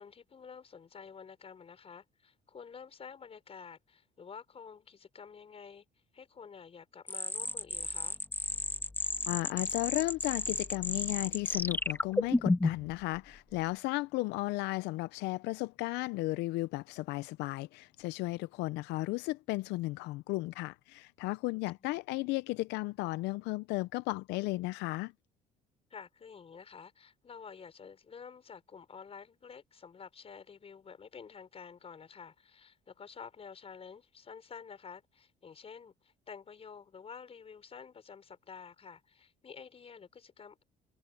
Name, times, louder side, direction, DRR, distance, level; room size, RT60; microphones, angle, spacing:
voice 1, 0.0-5.8 6.1-8.2 21.8-21.9 25.9-40.6, left 6 dB, 35° left, 5.7 m, -50 dB
sound 1, 7.1-12.9, left 2 dB, 10° left, 1.6 m, -32 dB
voice 2, 9.3-25.1, left 20 dB, 90° left, 0.4 m, -34 dB
cardioid pair, 110°, 17 cm